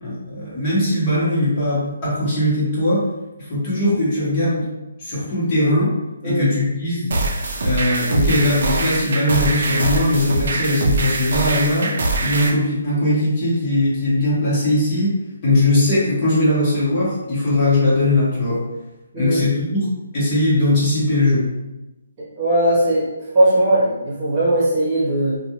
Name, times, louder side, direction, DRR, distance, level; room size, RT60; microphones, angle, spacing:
voice 1, 0.0-3.0 3.4-4.6 5.0-5.9 6.2-7.1 7.6-11.9 12.2-15.1 15.4-18.6 19.2-19.8 20.1-21.4, left 1 dB, 30° left, -9 dB, 1.2 m, -19 dB
sound 1, 7.1-12.5, right 2 dB, 55° right, 0.5 m, -22 dB
voice 2, 22.4-23.1 23.3-25.4, right 1 dB, 25° right, -9 dB, 1.0 m, -18 dB
2.5 x 2.3 x 3.0 m, 1.0 s
hypercardioid pair, 165°, 0 cm